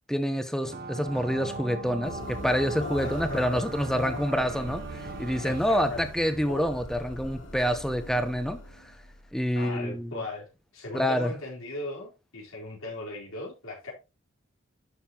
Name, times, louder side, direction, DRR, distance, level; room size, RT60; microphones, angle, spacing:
voice 1, 0.1-9.0 9.3-10.1 10.9-11.3, equal, ahead, 0.9 m, -27 dB
sound 1, 0.6-5.6, right 4 dB, 50° right, 0.9 m, -39 dB
sound 2, 1.1-5.5, left 2 dB, 35° left, 3.2 m, -46 dB
sound 3, 2.0-10.0, left 1 dB, 65° left, 3.4 m, -41 dB
voice 2, 3.0-3.6 5.4-6.0 9.5-10.5 10.7-13.9, left 2 dB, 85° left, 4.3 m, -38 dB
11.5 x 6.7 x 3.0 m
head